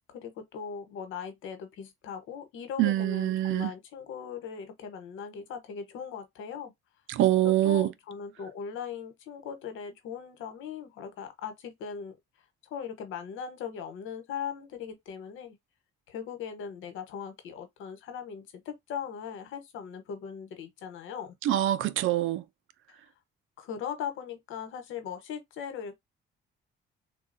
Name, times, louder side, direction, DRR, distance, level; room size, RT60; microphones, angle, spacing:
voice 1, 0.1-6.7 7.4-12.1 12.6-15.6 16.1-21.3 22.9-23.0 23.6-25.9, left 7 dB, 85° left, 1.0 m, -39 dB
voice 2, 2.8-3.7 7.1-7.9 21.4-22.4, right 13 dB, 85° right, 0.5 m, -25 dB
3.7 x 2.3 x 2.5 m
cardioid pair, 90°, 20 cm